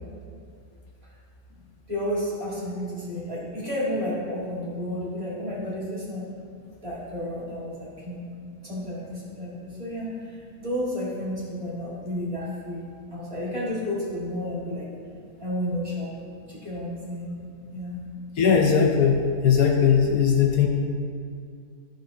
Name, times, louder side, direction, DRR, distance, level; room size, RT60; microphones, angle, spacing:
voice 1, 1.9-6.2 6.8-8.2 8.6-12.8 13.1-14.9 15.4-16.1 16.5-17.3 17.7-18.0, left 1 dB, 20° right, -7 dB, 1.9 m, -31 dB
voice 2, 18.4-20.7, left 7 dB, 70° left, 2 dB, 1.1 m, -19 dB
13.0 x 5.8 x 2.8 m, 2.3 s
omnidirectional pair, 1.7 m